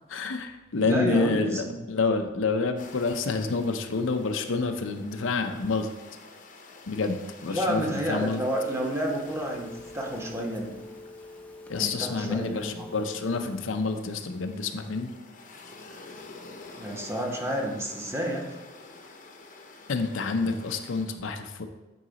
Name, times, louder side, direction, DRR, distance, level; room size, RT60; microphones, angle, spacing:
voice 1, 0.1-5.9 6.9-8.4 11.7-15.1 19.9-21.6, left 4 dB, 85° left, 6 dB, 0.6 m, -28 dB
voice 2, 0.8-1.8 7.5-10.9 11.8-12.9 16.7-18.4, equal, 15° right, 0 dB, 0.9 m, -30 dB
sound 1, 2.8-21.1, left 3 dB, 45° left, 0.7 m, -49 dB
Telephone, 8.5-13.7, left 2 dB, 5° left, 0.6 m, -45 dB
9.3 x 3.9 x 3.9 m, 1.1 s
head